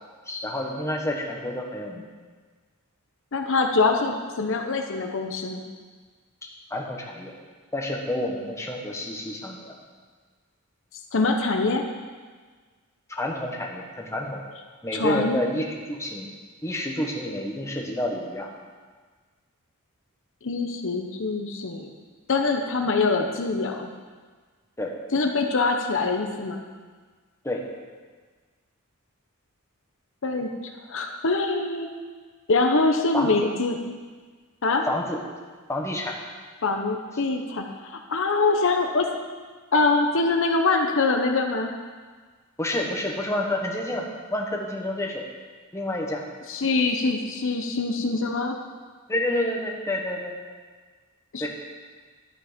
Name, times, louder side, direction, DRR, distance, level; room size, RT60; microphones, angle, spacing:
voice 1, 0.3-2.0 6.4-7.3 7.7-9.8 13.2-14.4 14.8-16.3 16.6-18.5 24.8-24.9 27.4-27.6 33.1-33.3 34.9-35.2 35.7-36.2 42.6-45.2 45.7-46.2 49.1-50.3 51.4-51.5, left 1 dB, 15° left, 0 dB, 1.3 m, -29 dB
voice 2, 3.3-5.6 11.1-11.8 14.9-15.4 20.4-21.9 22.3-23.9 25.1-26.6 30.2-30.5 30.9-31.9 32.5-33.8 34.6-34.8 36.6-39.1 39.7-41.7 46.5-48.6 51.3-51.5, left 3 dB, 65° left, 4 dB, 0.9 m, -24 dB
11.5 x 8.8 x 5.1 m, 1.5 s
head